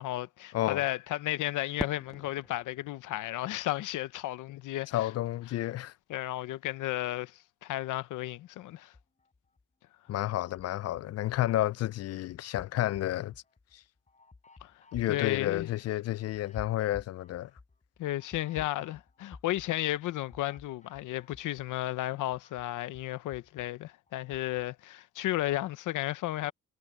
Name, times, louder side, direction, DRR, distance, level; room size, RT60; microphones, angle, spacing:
voice 1, 0.0-5.0 6.1-7.3 7.6-8.9 14.6-14.7 15.1-15.7 18.0-26.5, left 15 dB, 85° left, 0.9 m, -33 dB
Fireworks, 1.8-4.7, left 1 dB, ahead, 0.6 m, -43 dB
voice 2, 4.9-5.9 10.1-13.3 13.7-13.8 14.9-17.5, left 14 dB, 55° left, 0.4 m, -31 dB
sound 1, 8.9-9.6 10.1-11.7 12.1-21.8 22.1-24.7, left 3 dB, 25° left, 7.8 m, -54 dB
cardioid pair, 90°, 30 cm